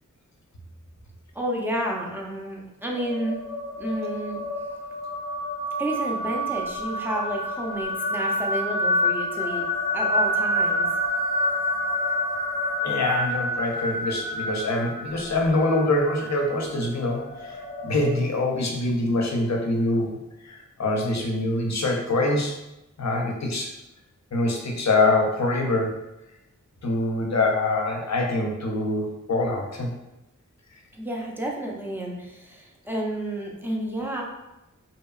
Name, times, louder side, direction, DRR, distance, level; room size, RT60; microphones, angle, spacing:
voice 1, 1.3-3.4 3.8-4.4 5.8-9.7 9.9-10.9 30.9-34.2, right 1 dB, 5° right, -2 dB, 0.5 m, -30 dB
sound 1, 2.9-18.1, left 1 dB, 90° right, 1.0 m, -28 dB
voice 2, 12.8-22.6 23.0-23.7 24.3-26.0 26.8-29.9 30.7-30.8, left 2 dB, 55° left, 1 dB, 0.5 m, -25 dB
2.8 x 2.2 x 2.3 m, 0.93 s
wide cardioid pair, 55°, 33 cm